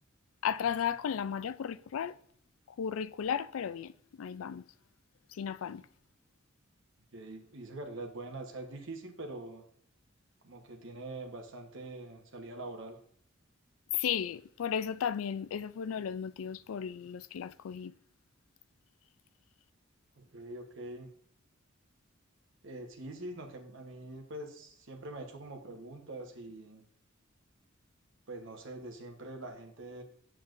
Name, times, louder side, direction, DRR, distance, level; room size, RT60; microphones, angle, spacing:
voice 1, 0.4-2.2 2.8-4.6 5.3-5.8 13.9-17.9, left 8 dB, 85° left, 0.4 m, -34 dB
voice 2, 7.1-9.6 10.4-13.0 20.2-21.1 22.6-26.8 28.3-30.0, right 2 dB, 65° right, 1.1 m, -44 dB
7.6 x 7.0 x 2.6 m
head